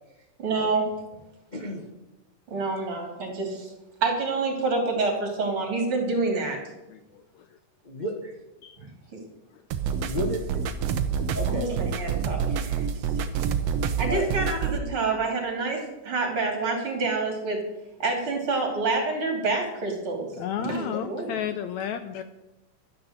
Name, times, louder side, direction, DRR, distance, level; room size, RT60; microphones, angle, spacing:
voice 1, 0.4-0.9 2.5-3.7 4.0-6.6 9.1-9.2 11.5-12.9 14.0-17.6 18.0-20.3 20.6-21.4, right 3 dB, 40° right, 2 dB, 3.7 m, -27 dB
voice 2, 1.5-1.8 7.8-8.3 10.0-10.4 11.3-11.7 14.1-14.3 20.9-21.0, left 1 dB, 40° left, 0 dB, 0.6 m, -31 dB
voice 3, 6.9-7.5 8.6-8.9 20.4-22.2, left 9 dB, 75° left, 10 dB, 1.7 m, -33 dB
sound 1, 9.7-14.8, right 7 dB, 65° right, 1.7 m, -27 dB
12.5 x 10.0 x 7.6 m, 0.99 s
omnidirectional pair, 3.7 m